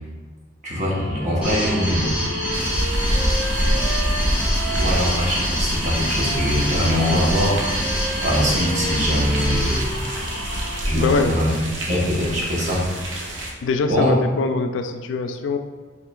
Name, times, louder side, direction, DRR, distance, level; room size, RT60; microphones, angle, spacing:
voice 1, 0.6-2.3 4.7-7.6 8.2-9.8 10.8-11.5 11.9-12.9 13.4-13.5 13.9-14.1, equal, 40° right, -5 dB, 0.9 m, -22 dB
Wind instrument woodwind instrument, 0.8-5.4 6.0-10.8, right 3 dB, 25° left, 1.2 m, -33 dB
sound 1, 1.4-10.7, equal, 10° right, 1.4 m, -26 dB
sound 2, 2.5-13.5, equal, 75° right, 0.6 m, -27 dB
voice 2, 10.9-11.4 13.6-15.6, left 4 dB, 80° left, 7 dB, 0.3 m, -23 dB
4.8 x 3.1 x 2.3 m, 1.4 s
head